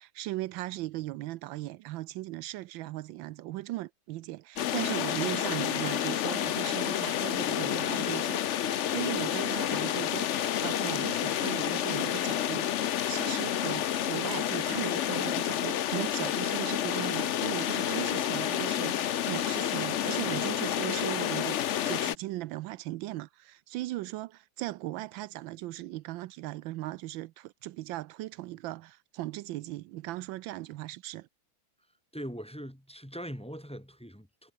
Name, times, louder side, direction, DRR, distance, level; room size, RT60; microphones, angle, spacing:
voice 1, 0.0-21.6 21.8-31.3, right 16 dB, 80° right, 1.3 m, -38 dB
sound 1, 4.6-22.1, left 10 dB, 70° left, 0.7 m, -30 dB
sound 2, 13.0-20.6, left 2 dB, 30° left, 5.4 m, -58 dB
voice 2, 32.1-34.5, equal, 5° left, 2.6 m, -41 dB
omnidirectional pair, 2.1 m